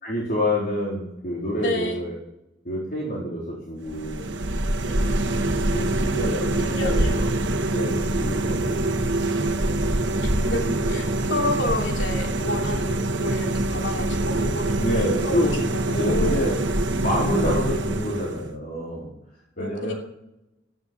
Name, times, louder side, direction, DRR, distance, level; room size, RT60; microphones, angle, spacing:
voice 1, 0.0-2.2 2.6-4.3 5.3-5.4 5.7-7.3 7.7-8.8 9.6-10.2 10.8-11.0 14.7-15.6 15.9-16.6 17.0-19.1 19.6-19.9, equal, 50° left, -4 dB, 4.1 m, -28 dB
voice 2, 1.6-2.0 4.8-5.2 6.7-7.2 10.2-16.5 19.6-19.9, left 2 dB, 80° left, 1 dB, 2.9 m, -30 dB
refridgerator noise, 3.8-18.5, right 1 dB, 80° right, 1.4 m, -24 dB
15.5 x 9.8 x 7.1 m, 0.88 s
head